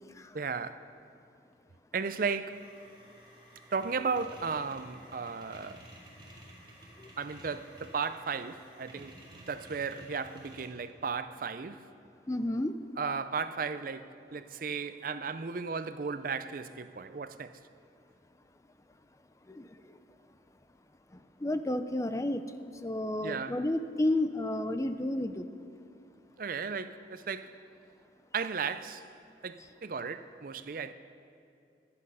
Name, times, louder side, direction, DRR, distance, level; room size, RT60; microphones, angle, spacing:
voice 1, 0.3-0.9 1.9-2.7 3.7-5.8 7.2-11.9 13.0-17.5 23.2-23.6 26.4-27.6 28.3-29.1 29.4-30.9, right 5 dB, 50° right, 0.5 m, -35 dB
sound 1, 2.5-10.7, right 1 dB, 25° right, 2.9 m, -53 dB
voice 2, 12.3-12.8 19.5-19.7 21.4-22.5 22.8-25.5, left 1 dB, 20° left, 0.5 m, -31 dB
16.5 x 12.0 x 5.5 m
head